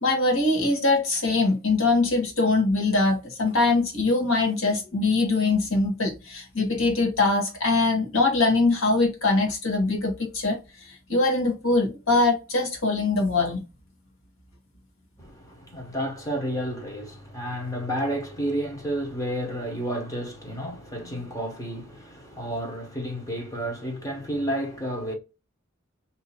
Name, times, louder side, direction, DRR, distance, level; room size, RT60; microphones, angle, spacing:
voice 1, 0.0-10.6 11.1-13.6, left 3 dB, 70° left, 1.3 m, -22 dB
voice 2, 15.2-25.1, equal, 15° left, 1.0 m, -31 dB
2.7 x 2.6 x 4.2 m
head